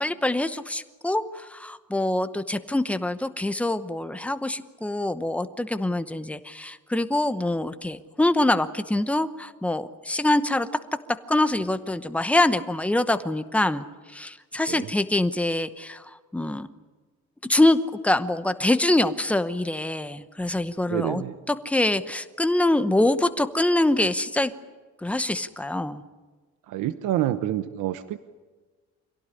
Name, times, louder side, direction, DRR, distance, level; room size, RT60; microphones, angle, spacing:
voice 1, 0.0-10.7 11.3-16.7 17.5-21.2 21.5-24.5 25.0-26.0, left 1 dB, 5° left, 10 dB, 0.9 m, -24 dB
voice 2, 20.9-21.4 26.7-28.2, right 12 dB, 85° right, 12 dB, 1.0 m, -27 dB
26.5 x 17.5 x 9.9 m, 1.4 s
cardioid pair, 180°, 30 cm